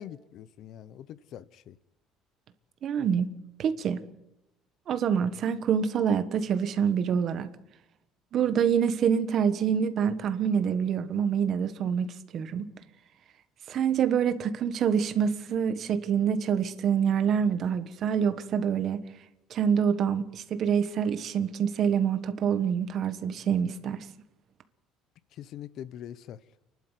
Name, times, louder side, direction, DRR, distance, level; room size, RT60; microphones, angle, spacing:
voice 1, 0.0-1.8 25.4-26.4, left 10 dB, 45° left, 0.8 m, -43 dB
voice 2, 2.8-3.3 3.6-4.0 4.9-7.5 8.3-12.1 12.3-12.7 13.7-19.0 19.5-24.0, right 7 dB, 40° right, 1.3 m, -26 dB
29.0 x 12.0 x 8.2 m
cardioid pair, 175°, 0 cm